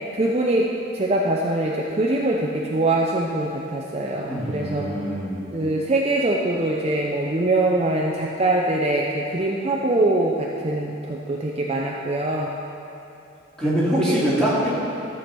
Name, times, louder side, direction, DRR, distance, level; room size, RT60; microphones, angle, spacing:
voice 1, 0.1-0.7 0.9-4.9 5.5-12.6 14.0-14.5, right 2 dB, 30° right, -2 dB, 0.5 m, -23 dB
voice 2, 4.3-5.4 13.6-14.7, equal, 5° left, -9 dB, 2.4 m, -23 dB
13.5 x 7.1 x 4.5 m, 2.7 s
head